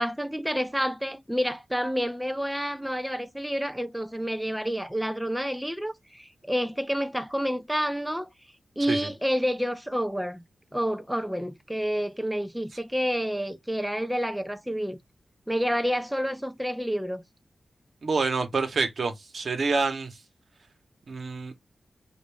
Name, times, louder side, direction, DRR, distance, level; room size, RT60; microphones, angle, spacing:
voice 1, 0.0-8.3 8.8-10.4 10.7-15.0 15.5-17.2, equal, 5° right, 0.5 m, -29 dB
voice 2, 18.0-20.1 21.1-21.5, right 4 dB, 65° right, 1.1 m, -27 dB
4.9 x 2.6 x 3.4 m
cardioid pair, 65°, 0 cm